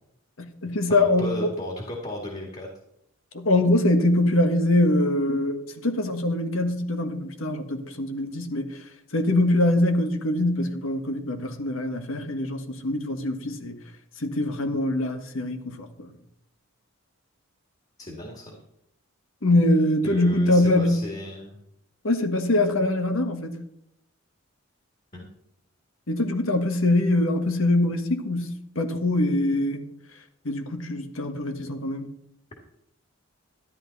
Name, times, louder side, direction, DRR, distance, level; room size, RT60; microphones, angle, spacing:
voice 1, 0.4-1.5 3.3-8.8 9.1-13.8 14.2-16.1 19.4-21.0 22.0-23.6 26.1-29.8 30.4-32.1, left 1 dB, 75° left, 1.5 m, -23 dB
voice 2, 0.9-2.7 18.0-18.6 20.0-21.6 25.1-25.3, left 1 dB, 30° left, 2.0 m, -35 dB
13.0 x 10.5 x 4.1 m
head